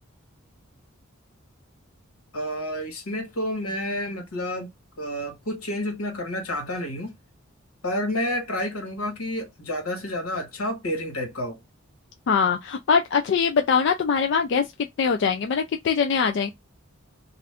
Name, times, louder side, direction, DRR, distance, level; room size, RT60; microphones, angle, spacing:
voice 1, 2.3-4.7 5.0-7.1 7.8-11.6, left 1 dB, 90° left, 1.4 m, -29 dB
voice 2, 12.3-14.7 15.0-16.5, left 6 dB, 55° left, 0.3 m, -22 dB
2.6 x 2.4 x 3.3 m
head